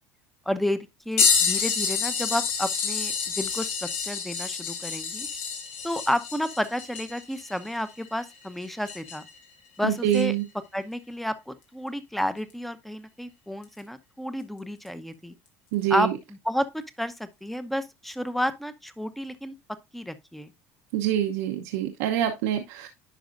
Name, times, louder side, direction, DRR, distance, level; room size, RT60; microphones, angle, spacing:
voice 1, 0.5-5.3 5.8-9.2 9.8-10.3 10.7-15.3 15.9-16.1 16.5-19.5 19.9-20.5, left 1 dB, ahead, 0.8 m, -31 dB
sound 1, 1.2-9.4 10.1-10.2 12.5-12.6 13.6-13.8 14.9-15.0, left 6 dB, 85° left, 2.7 m, -28 dB
voice 2, 9.8-10.4 15.7-16.2 20.9-22.9, right 11 dB, 85° right, 0.9 m, -25 dB
10.0 x 5.1 x 2.5 m
supercardioid pair, 105°, 7 cm